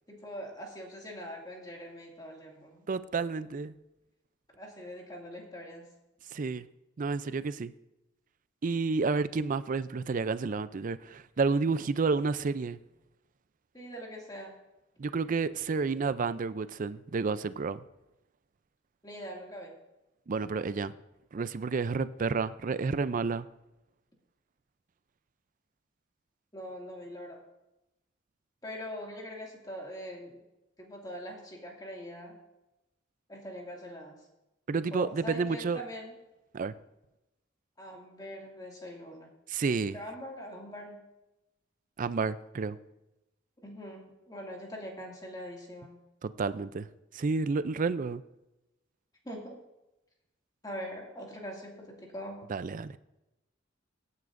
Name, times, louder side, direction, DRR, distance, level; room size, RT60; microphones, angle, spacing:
voice 1, 0.1-2.9 4.5-5.9 13.7-14.6 19.0-19.8 26.5-27.4 28.6-30.4 30.8-32.3 33.3-34.1 34.9-36.2 37.8-39.3 39.9-41.0 43.6-46.0 49.2-49.6 50.6-52.4, equal, 20° left, -1 dB, 2.2 m, -42 dB
voice 2, 2.9-3.7 6.3-6.6 7.0-7.7 8.6-12.8 15.0-17.8 20.3-20.9 21.3-23.5 34.7-35.8 36.5-36.7 39.5-40.0 42.0-42.8 46.2-46.9 47.1-48.2 52.5-52.9, right 4 dB, 40° right, 15 dB, 0.4 m, -30 dB
17.5 x 9.7 x 2.6 m, 0.95 s
head